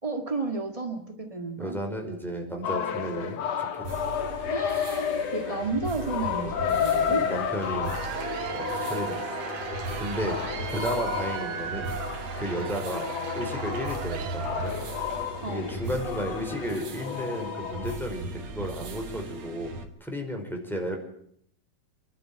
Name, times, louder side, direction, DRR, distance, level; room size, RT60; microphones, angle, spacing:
voice 1, 0.0-1.8 4.5-7.3 15.4-15.9, right 3 dB, 70° right, 4 dB, 0.3 m, -32 dB
voice 2, 1.6-3.7 7.0-8.0 8.5-9.3 10.0-10.4 10.7-11.9 12.3-13.1 13.3-14.7 15.4-19.7 20.0-21.0, equal, ahead, 1 dB, 4.8 m, -33 dB
sound 1, 2.6-18.0, left 8 dB, 55° left, 2.2 m, -32 dB
sound 2, 3.8-19.8, right 2 dB, 55° right, 3.1 m, -39 dB
Cheering / Applause / Crowd, 7.6-15.3, right 7 dB, 85° right, 3.9 m, -36 dB
27.5 x 12.0 x 9.0 m, 0.67 s
omnidirectional pair, 4.1 m